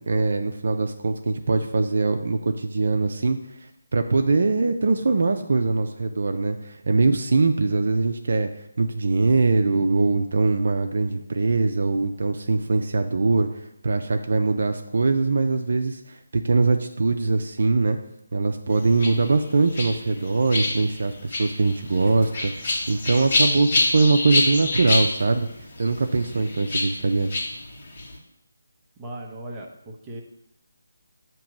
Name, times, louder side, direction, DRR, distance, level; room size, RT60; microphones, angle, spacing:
voice 1, 0.1-3.4 3.9-8.5 8.8-18.0 18.3-25.5 25.8-27.4, right 3 dB, 60° right, 6 dB, 0.5 m, -22 dB
sound 1, 18.7-28.2, left 2 dB, 50° left, 1.6 m, -27 dB
voice 2, 29.0-30.2, right 1 dB, 15° right, -1 dB, 0.8 m, -37 dB
7.1 x 3.0 x 5.9 m, 0.80 s
figure-of-eight pair, 160°, 0 cm